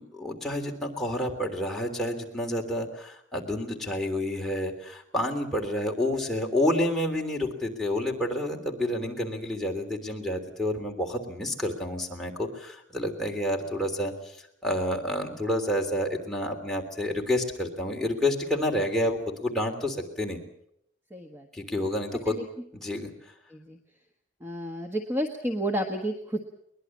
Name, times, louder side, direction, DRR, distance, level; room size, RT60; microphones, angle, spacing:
voice 1, 0.0-14.4 14.6-20.4 21.5-22.4 22.7-23.1, left 1 dB, ahead, -1 dB, 3.2 m, -29 dB
voice 2, 21.1-21.7 22.2-22.4 23.5-23.8 24.4-26.4, right 1 dB, 15° right, 4 dB, 1.5 m, -31 dB
22.5 x 20.5 x 7.4 m, 0.73 s
head